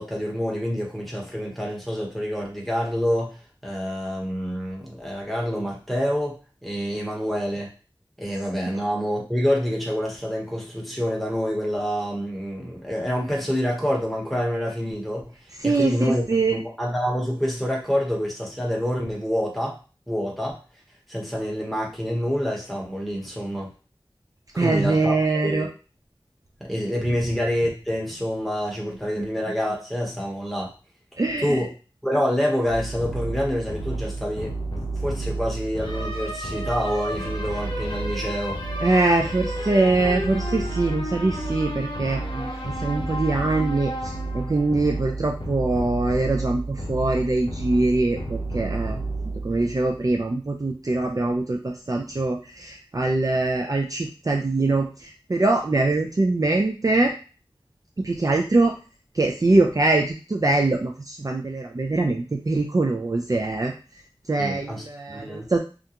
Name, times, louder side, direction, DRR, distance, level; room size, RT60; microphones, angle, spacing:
voice 1, 0.0-3.4 3.6-7.7 8.2-15.3 15.6-19.8 20.1-20.6 21.1-23.7 24.5-25.7 26.6-30.7 31.4-31.7 32.0-34.6 35.0-38.6 64.4-65.5, equal, ahead, -3 dB, 0.9 m, -27 dB
voice 2, 15.6-16.6 24.6-25.7 29.2-29.3 31.2-31.6 38.8-49.0 49.4-57.1 58.0-58.7 59.1-63.7 64.3-65.6, right 2 dB, 40° right, 1 dB, 0.4 m, -23 dB
sound 1, 32.7-50.3, right 2 dB, 60° left, 0.6 m, -31 dB
2.4 x 2.2 x 2.8 m, 0.34 s
wide cardioid pair, 40°, 9 cm